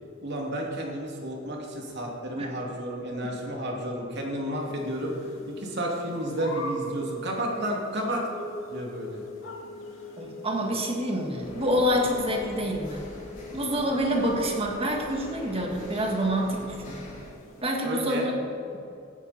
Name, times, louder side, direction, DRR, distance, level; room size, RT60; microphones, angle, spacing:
voice 1, 0.2-5.2 5.5-8.2 8.7-9.2 17.8-18.3, right 1 dB, 60° right, -1 dB, 2.7 m, -31 dB
sound 1, 4.6-17.8, left 2 dB, 85° left, 2.2 m, -47 dB
sound 2, 6.2-16.8, equal, 10° left, 2.3 m, -42 dB
voice 2, 10.2-13.1 13.5-17.0 17.6-18.3, equal, 30° right, 1 dB, 1.8 m, -27 dB
sound 3, 11.4-17.3, equal, 40° left, 3.5 m, -44 dB
17.0 x 9.8 x 4.3 m, 2.8 s
head